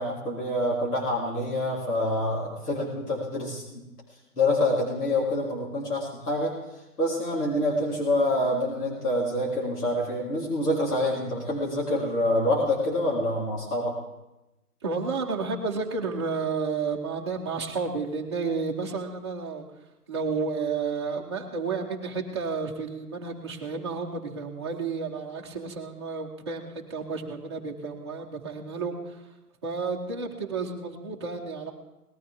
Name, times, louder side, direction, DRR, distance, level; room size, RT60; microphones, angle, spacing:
voice 1, 0.0-3.8 4.4-6.5 7.0-13.9, left 1 dB, 75° left, -5 dB, 3.5 m, -26 dB
voice 2, 14.8-19.6 20.1-29.2 29.6-31.7, right 4 dB, 20° right, -2 dB, 0.9 m, -31 dB
18.5 x 12.5 x 3.6 m, 0.98 s
hypercardioid pair, 165°, 46 cm